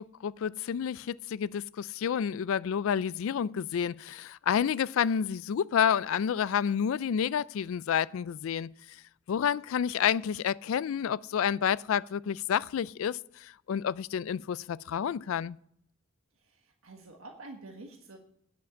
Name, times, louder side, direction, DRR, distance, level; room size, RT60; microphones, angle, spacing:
voice 1, 0.0-8.7 9.3-15.6, left 8 dB, 70° left, 0.3 m, -29 dB
voice 2, 16.4-18.2, right 2 dB, 80° right, 1.5 m, -48 dB
9.4 x 7.3 x 7.2 m
head